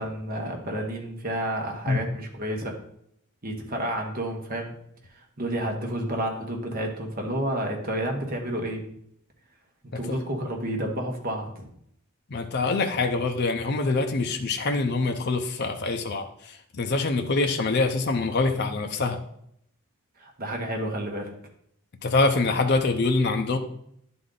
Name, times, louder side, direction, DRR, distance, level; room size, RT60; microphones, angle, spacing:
voice 1, 0.0-2.7 3.4-4.8 5.1-8.8 9.9-11.7 20.2-21.3, right 1 dB, 40° right, 2 dB, 1.2 m, -30 dB
voice 2, 12.3-19.2 22.0-23.6, left 3 dB, 50° left, 5 dB, 0.6 m, -25 dB
10.5 x 3.9 x 3.8 m, 0.72 s
head